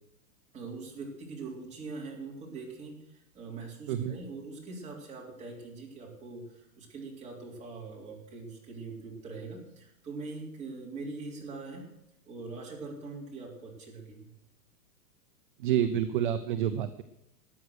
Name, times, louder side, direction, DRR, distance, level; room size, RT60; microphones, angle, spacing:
voice 1, 0.5-11.8 12.2-14.3, right 3 dB, 15° right, -3 dB, 3.3 m, -42 dB
voice 2, 15.6-17.0, right 10 dB, 35° right, 10 dB, 0.5 m, -28 dB
13.5 x 9.1 x 6.4 m, 0.84 s
hypercardioid pair, 155°, 48 cm